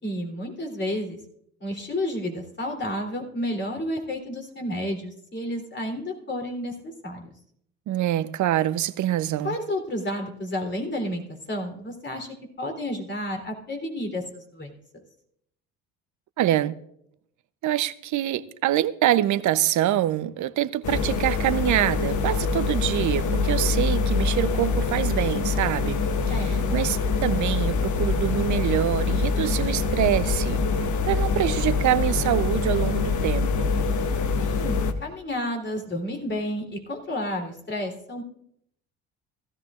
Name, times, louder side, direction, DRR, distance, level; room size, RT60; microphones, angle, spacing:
voice 1, 0.0-1.2 1.6-6.7 7.0-7.3 9.4-11.2 11.5-15.0 26.3-26.8 34.4-38.2, left 1 dB, 30° left, 3.4 m, -31 dB
voice 2, 7.9-9.6 16.4-16.7 17.6-33.7, right 13 dB, 55° right, 0.8 m, -25 dB
sound 1, 20.8-34.9, left 4 dB, 55° left, 1.2 m, -24 dB
16.5 x 14.0 x 2.5 m
hypercardioid pair, 65°, 35 cm